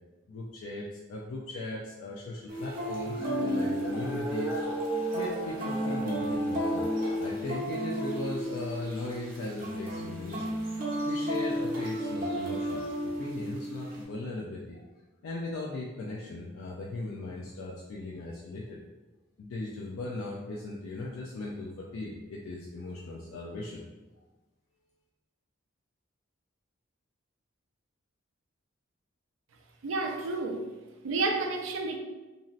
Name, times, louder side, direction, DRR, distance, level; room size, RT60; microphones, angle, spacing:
voice 1, 0.3-4.6 5.1-6.9 7.2-10.5 11.0-14.9 15.2-18.8 19.4-23.8, left 2 dB, 80° left, -3 dB, 0.4 m, -38 dB
sound 1, 2.5-14.0, equal, 40° right, 0.7 m, -33 dB
sound 2, 2.9-7.3, right 1 dB, 10° right, 0.5 m, -35 dB
voice 2, 29.8-30.7 31.0-32.0, right 3 dB, 65° right, 3 dB, 0.4 m, -30 dB
2.9 x 2.6 x 2.4 m, 1.2 s
head